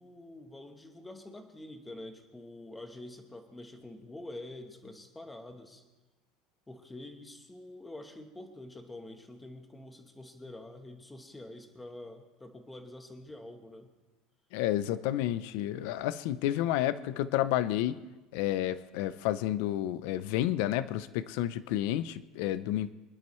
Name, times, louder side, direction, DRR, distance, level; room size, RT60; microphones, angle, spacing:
voice 1, 0.0-5.8 6.7-13.9, left 1 dB, 5° left, 6 dB, 1.1 m, -46 dB
voice 2, 14.5-18.0 18.3-22.9, left 13 dB, 60° left, 15 dB, 0.6 m, -30 dB
24.5 x 11.5 x 3.2 m, 1.1 s
cardioid pair, 175°, 0 cm